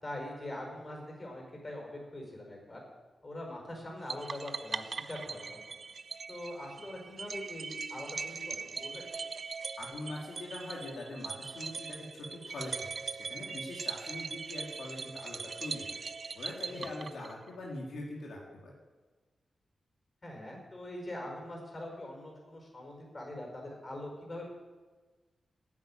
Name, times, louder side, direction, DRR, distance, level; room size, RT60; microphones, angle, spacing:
voice 1, 0.0-2.8 3.2-5.8 6.3-9.0 16.7-16.9 20.2-24.4, left 1 dB, 35° left, 0 dB, 5.0 m, -43 dB
sound 1, 4.1-17.5, right 5 dB, 55° right, 0.5 m, -41 dB
voice 2, 9.8-16.0 16.3-18.7, left 2 dB, 85° left, -2 dB, 2.5 m, -43 dB
9.8 x 9.6 x 9.1 m, 1.3 s
cardioid pair, 90°, 0 cm